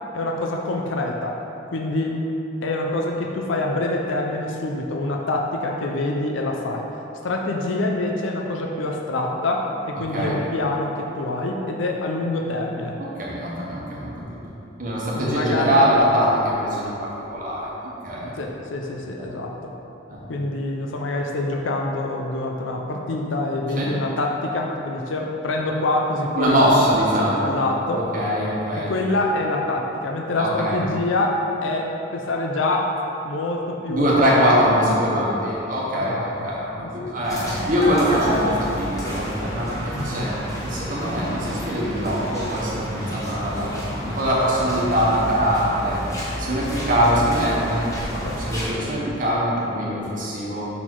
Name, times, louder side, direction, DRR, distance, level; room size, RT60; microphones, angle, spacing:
voice 1, 0.1-1.3 1.7-2.1 2.6-6.9 7.2-13.0 15.2-15.8 18.4-19.5 20.3-26.6 27.4-28.0 28.9-31.4 31.6-31.8 32.1-32.9 33.2-34.5 35.1-35.2 35.9-36.5 36.8-37.1 39.9-40.3 48.2-48.4, left 2 dB, 70° left, 1 dB, 0.5 m, -25 dB
voice 2, 13.2-14.1 14.8-17.7 18.0-18.3 20.1-20.2 23.8-23.9 26.4-27.5 27.9-28.9 30.4-30.8 33.9-40.3 40.6-46.0 46.4-50.7, equal, 40° right, -5 dB, 1.1 m, -22 dB
sound 1, 37.2-48.7, equal, 15° left, 1.1 m, -29 dB
6.0 x 4.0 x 4.6 m, 2.9 s
head